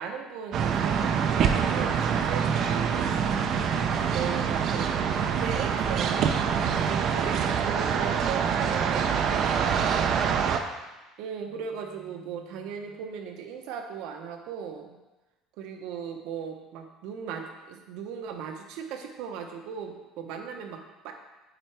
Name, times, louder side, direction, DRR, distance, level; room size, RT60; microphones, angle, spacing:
voice 1, 0.0-3.3 3.8-10.1 11.2-14.9 15.6-21.1, right 7 dB, 75° right, 4 dB, 0.9 m, -38 dB
sound 1, 0.5-10.6, right 7 dB, 50° right, 0.5 m, -25 dB
8.9 x 4.1 x 3.3 m, 1.1 s
cardioid pair, 130°, 0 cm